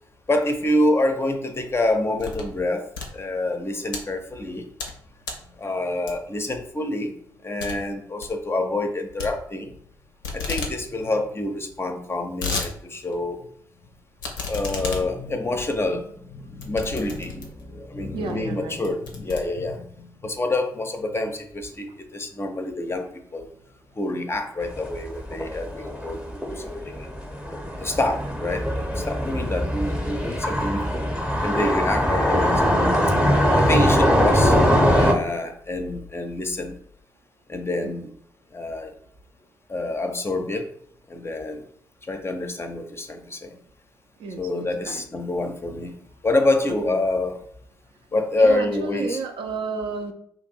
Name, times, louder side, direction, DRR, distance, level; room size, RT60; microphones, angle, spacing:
voice 1, 0.3-2.8 3.1-4.7 5.6-7.1 7.4-9.7 10.3-13.5 14.5-23.5 24.0-27.1 27.8-30.8 31.4-32.8 33.6-34.6 34.9-36.8 37.5-38.1 38.5-38.9 39.7-40.7 41.1-41.6 42.0-43.6 44.4-45.9 46.2-47.4 48.1-49.2, left 2 dB, 25° left, 5 dB, 0.6 m, -27 dB
sound 1, 1.6-2.6 2.9-4.0 4.5-5.0 5.2-5.5 6.1-6.4 6.8-6.9 7.2-7.3 7.6-7.8 8.0-8.4 9.2-9.9 10.2-10.8 11.1-11.2 11.3-11.4 12.0-12.7 13.1-13.2 14.2-17.7 18.3-18.4 18.7-20.0, left 4 dB, 80° left, 0.5 m, -33 dB
voice 2, 18.1-18.8 37.8-37.9 44.2-45.1 46.9-47.0 48.4-50.1, right 4 dB, 55° right, 4 dB, 0.5 m, -32 dB
sound 2, 24.7-35.1, equal, 5° right, 0.7 m, -22 dB
2.7 x 2.5 x 4.2 m, 0.67 s
figure-of-eight pair, 40°, 11 cm